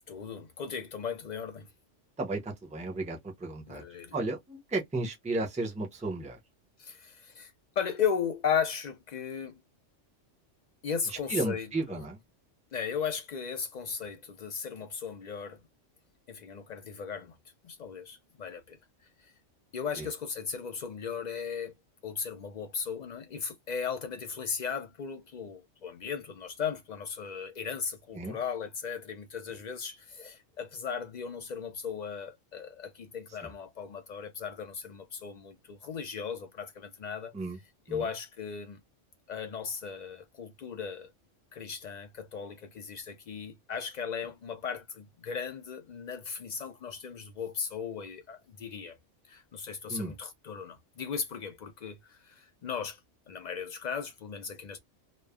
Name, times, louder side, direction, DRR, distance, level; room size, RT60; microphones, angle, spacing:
voice 1, 0.1-1.7 3.7-4.1 6.8-9.6 10.8-12.0 12.7-15.6 16.3-17.3 17.6-18.8 19.2-19.3 19.7-21.7 22.0-37.3 37.9-38.8 39.3-41.1 41.5-48.9 49.3-53.0 53.3-54.8, left 6 dB, 60° left, 0.4 m, -36 dB
voice 2, 2.2-3.8 4.1-6.4 11.1-12.2 20.0-20.1 28.1-28.4 33.4-33.5 37.3-37.6 37.9-38.1 49.9-50.1, right 2 dB, 10° right, 0.4 m, -34 dB
3.0 x 2.0 x 2.3 m
omnidirectional pair, 1.2 m